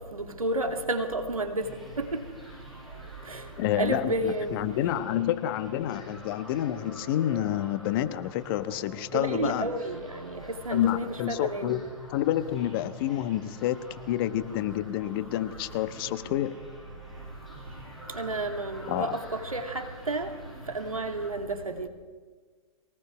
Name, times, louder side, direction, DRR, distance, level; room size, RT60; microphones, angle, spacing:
voice 1, 0.1-1.7 2.0-2.2 3.3-3.4 3.8-4.6 9.1-11.7 18.1-20.3 20.7-21.9, right 2 dB, 85° right, 2.6 m, -31 dB
sound 1, 1.6-21.3, equal, ahead, 7.1 m, -48 dB
voice 2, 3.6-9.7 10.7-11.8 12.1-16.5 18.9-19.2, left 12 dB, 40° left, 1.2 m, -29 dB
23.0 x 18.5 x 6.1 m
figure-of-eight pair, 110°, 18 cm